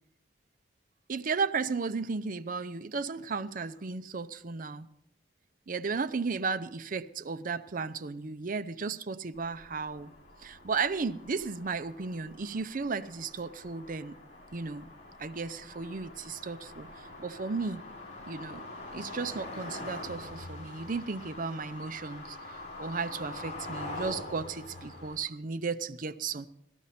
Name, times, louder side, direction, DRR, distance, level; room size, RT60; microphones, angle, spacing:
voice 1, 1.1-4.9 5.7-10.1 10.4-14.2 14.5-14.9 15.2-17.8 18.3-18.7 18.9-26.5, right 4 dB, 50° right, 0.6 m, -34 dB
sound 1, 9.3-25.2, left 2 dB, 45° left, 7.0 m, -44 dB
18.0 x 14.0 x 4.3 m
head